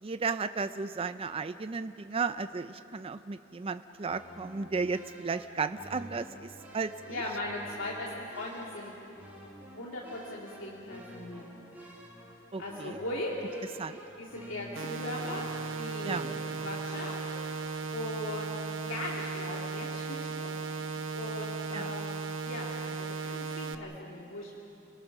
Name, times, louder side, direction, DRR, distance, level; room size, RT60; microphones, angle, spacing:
voice 1, 0.0-7.2 12.5-13.0 13.8-14.0 16.0-16.3 21.7-21.9, right 4 dB, 30° right, 11 dB, 0.4 m, -34 dB
sound 1, 4.0-17.7, equal, 10° right, 4.8 m, -50 dB
voice 2, 7.1-8.9 9.7-11.5 12.6-13.3 14.2-16.3 16.6-17.1 17.9-18.5 18.9-24.6, left 1 dB, 80° left, -4 dB, 2.4 m, -39 dB
sound 2, 14.8-23.8, right 4 dB, 65° right, 1.0 m, -36 dB
30.0 x 19.0 x 6.0 m, 2.7 s
head